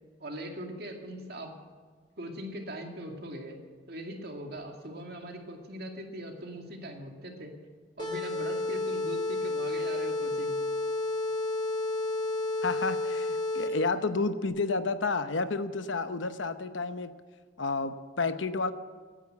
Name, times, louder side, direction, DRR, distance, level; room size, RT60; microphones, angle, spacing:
voice 1, 0.2-1.5 2.2-3.6 3.9-7.5 8.0-10.6, right 1 dB, 55° right, 2 dB, 2.2 m, -40 dB
sound 1, 8.0-13.9, left 2 dB, 25° left, 2.2 m, -31 dB
voice 2, 12.6-17.1 17.6-18.7, left 3 dB, 75° left, 11 dB, 0.9 m, -30 dB
15.5 x 10.0 x 8.0 m, 1.5 s
head